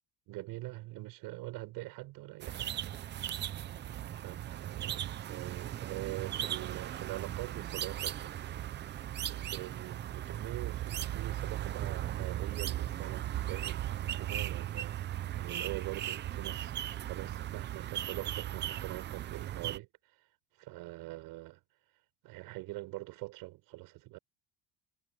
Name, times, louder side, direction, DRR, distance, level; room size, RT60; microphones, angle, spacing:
voice 1, 0.3-2.7 3.1-3.5 4.1-8.4 9.2-16.8 17.1-19.9 20.6-21.6 22.2-24.2, right 20 dB, 70° right, 7.0 m, -44 dB
sound 1, 2.4-19.8, right 12 dB, 30° right, 0.6 m, -37 dB
cardioid pair, 160°, 35 cm